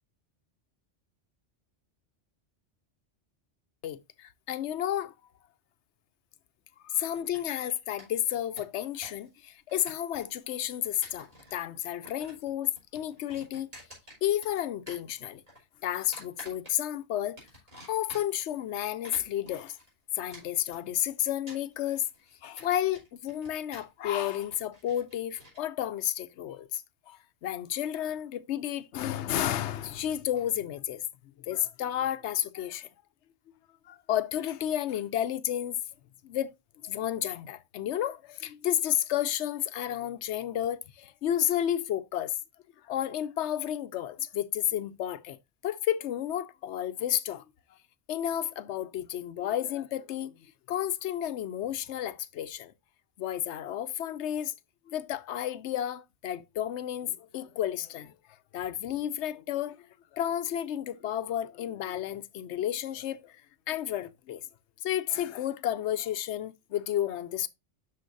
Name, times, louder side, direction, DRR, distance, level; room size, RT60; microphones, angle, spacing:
voice 1, 3.8-5.1 6.9-13.7 14.2-15.4 15.8-17.4 17.9-19.8 20.2-22.1 22.4-31.0 31.5-32.9 33.9-35.8 36.2-36.5 36.8-42.3 42.9-45.4 45.6-47.4 48.1-52.7 53.2-54.5 54.9-58.1 58.5-59.8 60.1-63.3 63.7-64.4 64.8-67.5, left 11 dB, 80° left, 0.9 m, -31 dB
sound 1, 7.1-7.7 8.0-8.1 8.4-9.3 9.5-10.4 10.8-11.6 11.9-12.5 12.8-14.6 14.9-15.6 16.1-17.0 17.4-18.5 18.9-25.6, equal, 35° right, 4.5 m, -50 dB
12.5 x 4.5 x 2.6 m
omnidirectional pair, 1.2 m